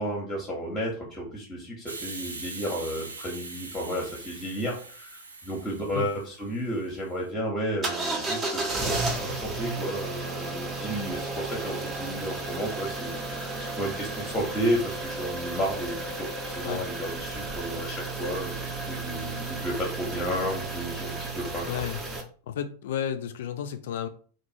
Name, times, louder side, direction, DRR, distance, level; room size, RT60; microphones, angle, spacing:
voice 1, 0.0-21.8, equal, 15° left, -1 dB, 0.8 m, -32 dB
Hiss, 1.9-7.2, right 3 dB, 75° right, 0.5 m, -42 dB
sound 1, 7.8-22.2, right 2 dB, 20° right, 0.6 m, -33 dB
voice 2, 21.7-22.0 22.5-24.1, left 9 dB, 55° left, 9 dB, 0.3 m, -32 dB
2.5 x 2.3 x 2.7 m, 0.43 s
figure-of-eight pair, 90°, 0 cm